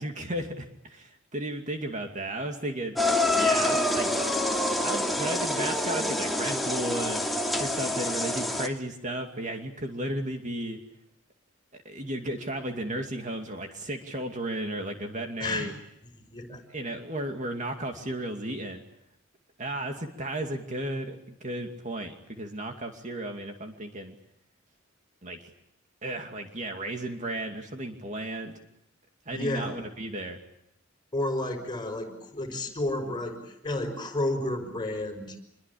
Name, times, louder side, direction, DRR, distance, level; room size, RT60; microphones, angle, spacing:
voice 1, 0.0-4.1 4.8-7.2 7.6-10.8 11.7-15.7 16.7-18.8 19.6-24.2 25.2-25.5 26.0-28.5 29.3-30.4, right 1 dB, 35° right, 4 dB, 2.5 m, -34 dB
sound 1, 3.0-8.7, left 1 dB, ahead, 2.6 m, -27 dB
voice 2, 15.4-15.7 16.0-16.6 29.3-29.8 31.1-35.4, left 1 dB, 20° left, 4 dB, 5.8 m, -31 dB
27.0 x 23.0 x 8.6 m, 0.76 s
head